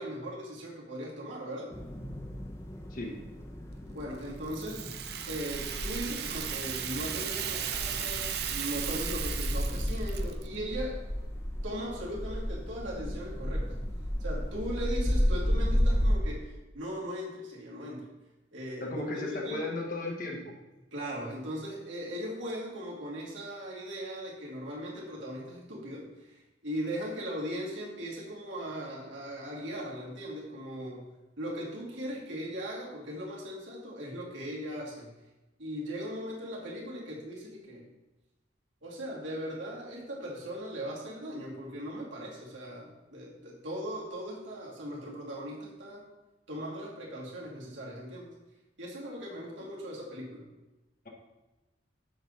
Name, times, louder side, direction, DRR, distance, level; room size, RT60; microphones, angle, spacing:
voice 1, 0.0-1.7 3.9-4.9 5.3-11.0 11.6-13.9 14.2-18.0 18.5-19.7 20.9-31.1 31.4-35.1 35.6-37.9 38.8-46.0 46.5-48.3 48.8-50.5, equal, 75° right, -4 dB, 2.3 m, -38 dB
sound 1, 1.7-16.2, equal, 15° left, 0.7 m, -33 dB
Rattle (instrument), 4.5-10.5, right 9 dB, 55° right, 0.5 m, -36 dB
voice 2, 18.8-20.5, left 2 dB, 45° left, -1 dB, 1.0 m, -35 dB
6.9 x 4.0 x 6.5 m, 1.1 s
head